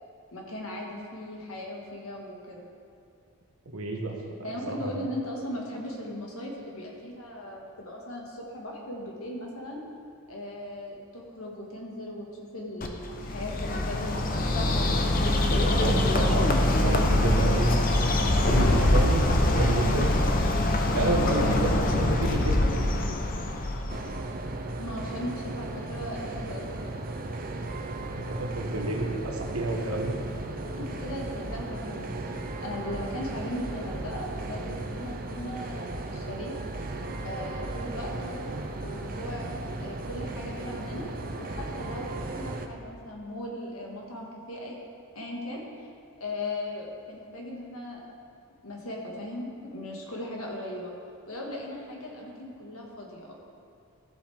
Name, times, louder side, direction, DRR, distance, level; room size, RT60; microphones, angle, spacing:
voice 1, 0.3-2.7 4.4-9.8 10.3-14.6 24.8-27.0 30.8-36.5 37.2-39.5 39.8-41.1 41.3-44.8 45.2-45.6 46.2-48.0 48.6-50.9 51.3-53.3, left 1 dB, 70° left, -1 dB, 1.8 m, -38 dB
voice 2, 3.6-4.1 4.7-5.0 15.8-17.7 18.4-19.2 19.5-20.1 20.9-23.2 28.2-30.1, right 2 dB, 75° right, 0 dB, 1.4 m, -29 dB
Bird, 12.8-24.2, left 1 dB, 40° left, 0.7 m, -24 dB
sound 1, 23.9-42.7, right 2 dB, 40° right, 0.6 m, -36 dB
14.0 x 7.8 x 3.6 m, 2.4 s
head